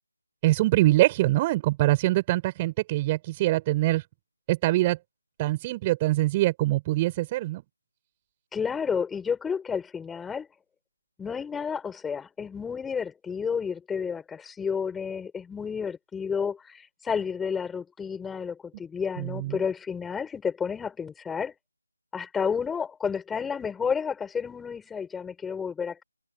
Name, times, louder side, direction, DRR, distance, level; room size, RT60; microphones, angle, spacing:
voice 1, 0.4-4.0 4.5-5.0 5.4-7.6 19.2-19.6, right 17 dB, 15° right, 6.0 m, -24 dB
voice 2, 8.5-10.5 11.2-21.5 22.1-26.0, left 6 dB, 5° left, 7.0 m, -31 dB
figure-of-eight pair, 160°, 0 cm